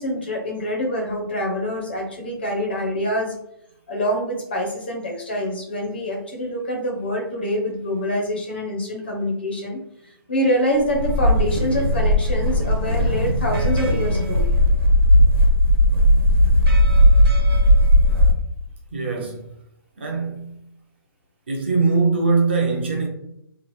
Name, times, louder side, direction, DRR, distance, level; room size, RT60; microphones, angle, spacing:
voice 1, 0.0-3.3 3.9-9.8 10.3-14.4, equal, 25° left, 0.5 m, -25 dB
sound 1, 10.8-18.3, equal, 65° right, 1.1 m, -17 dB
voice 2, 18.9-19.5 20.0-20.6 21.5-23.1, right 4 dB, 25° right, 0.5 m, -21 dB
2.9 x 2.3 x 3.1 m
hypercardioid pair, 175°, 13 cm